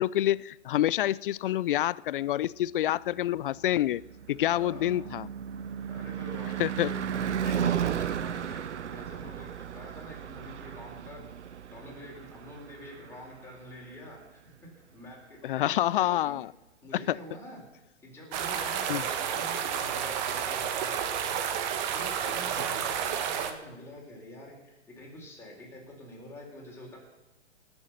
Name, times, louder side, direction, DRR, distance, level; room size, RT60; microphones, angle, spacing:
voice 1, 0.0-4.0 4.3-5.3 6.6-6.9 7.5-7.7 15.4-16.5 17.1-17.2 18.9-19.0, left 13 dB, 50° left, 0.4 m, -27 dB
Car passing by / Truck / Engine, 3.5-13.8, right 9 dB, 80° right, 0.8 m, -35 dB
voice 2, 4.5-5.1 5.9-7.1 7.5-16.4 16.8-21.4 21.9-27.0, left 1 dB, 5° left, 3.9 m, -47 dB
sound 1, 18.3-23.5, right 8 dB, 40° right, 1.4 m, -31 dB
18.5 x 7.0 x 6.6 m
hypercardioid pair, 130°, 35 cm